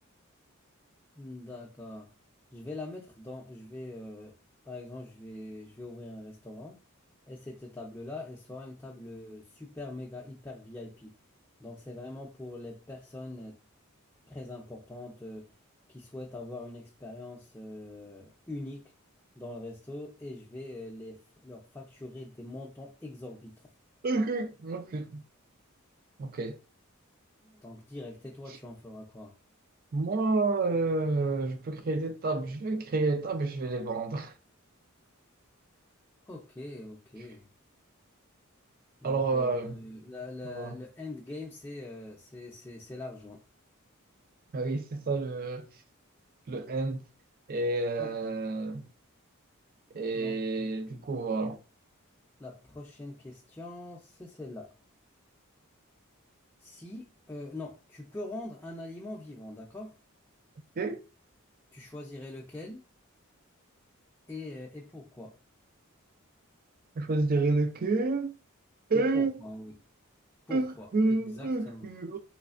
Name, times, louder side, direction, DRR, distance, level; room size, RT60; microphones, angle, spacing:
voice 1, 1.2-2.1 2.5-4.3 4.6-6.8 7.3-11.1 11.6-13.6 14.3-15.5 15.9-18.9 19.3-23.6 27.4-29.3 36.3-37.5 39.0-43.4 48.0-48.3 50.1-51.1 52.4-54.7 56.6-59.9 61.7-62.9 64.3-65.3 68.9-69.8 70.5-71.9, left 2 dB, 10° left, 0.5 m, -43 dB
voice 2, 24.0-25.2 26.2-26.6 29.9-34.3 39.0-39.8 40.4-40.7 44.5-45.7 46.5-47.0 47.5-48.9 49.9-51.6 60.8-61.0 67.0-68.3 68.9-69.4 70.5-72.2, right 3 dB, 45° right, 0.4 m, -29 dB
3.2 x 3.2 x 2.5 m
head